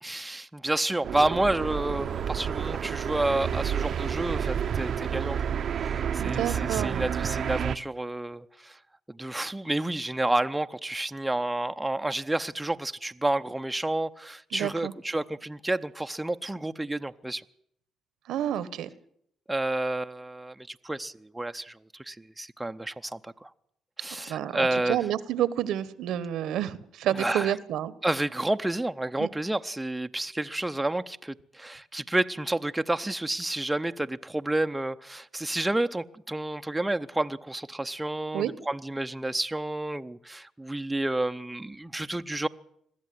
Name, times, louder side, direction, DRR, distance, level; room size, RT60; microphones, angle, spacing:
voice 1, 0.0-5.4 5.7-8.8 9.1-17.4 19.5-23.5 24.0-25.0 27.1-27.5 28.0-42.5, right 2 dB, 10° right, 0.8 m, -30 dB
sound 1, 1.0-7.8, right 8 dB, 60° right, 0.8 m, -30 dB
voice 2, 6.2-7.1 14.5-14.9 18.3-18.9 24.1-27.9 29.2-29.3 38.3-38.5, right 11 dB, 80° right, 1.1 m, -29 dB
22.0 x 14.5 x 9.4 m
cardioid pair, 90°, 0 cm